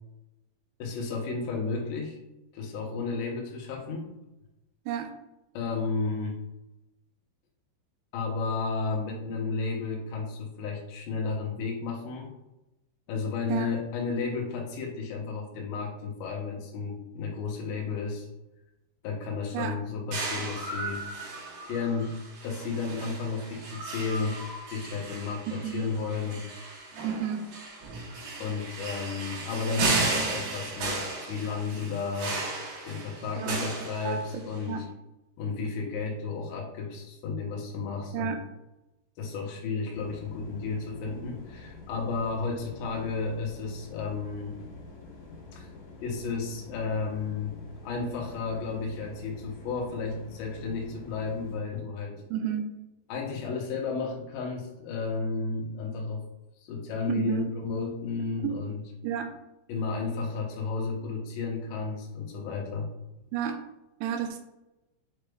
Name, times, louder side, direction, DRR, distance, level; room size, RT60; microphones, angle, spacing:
voice 1, 0.8-2.2 2.5-4.1 5.5-6.4 8.1-12.3 13.1-18.3 19.0-21.0 21.7-22.2 22.4-24.4 24.7-26.5 28.4-31.0 31.3-32.4 32.8-34.9 35.4-38.4 39.2-44.6 45.5-45.7 46.0-52.2 53.1-56.2 56.6-58.8 59.7-62.9, left 4 dB, 80° left, 0 dB, 2.1 m, -33 dB
sound 1, 20.1-34.6, right 3 dB, 65° right, 3.1 m, -35 dB
voice 2, 25.5-25.8 27.0-27.4 33.4-33.7 34.0-34.8 38.1-38.4 52.3-52.6 57.1-57.5 58.4-58.5 59.0-59.3 63.3-63.6 64.0-64.4, right 8 dB, 85° right, 5 dB, 2.8 m, -31 dB
sound 2, 39.9-51.6, left 3 dB, 60° left, 2.1 m, -47 dB
7.2 x 3.3 x 2.2 m, 0.95 s
omnidirectional pair, 5.4 m